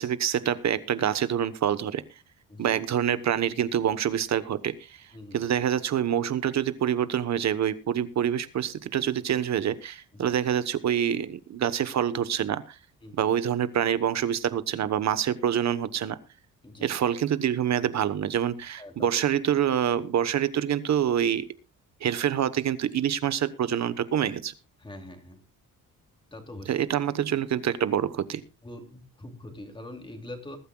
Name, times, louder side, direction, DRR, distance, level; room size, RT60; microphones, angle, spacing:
voice 1, 0.0-2.0 2.6-5.0 5.3-12.8 13.2-16.2 16.8-21.5 22.0-24.5 26.7-28.4, right 9 dB, 55° right, 13 dB, 1.2 m, -26 dB
voice 2, 5.1-5.6 10.1-10.4 13.0-13.3 16.6-16.9 18.8-19.2 24.8-25.4 26.3-26.8 28.6-30.6, left 1 dB, 15° left, 4 dB, 2.8 m, -43 dB
21.0 x 12.5 x 2.4 m, 0.29 s
cardioid pair, 155°, 33 cm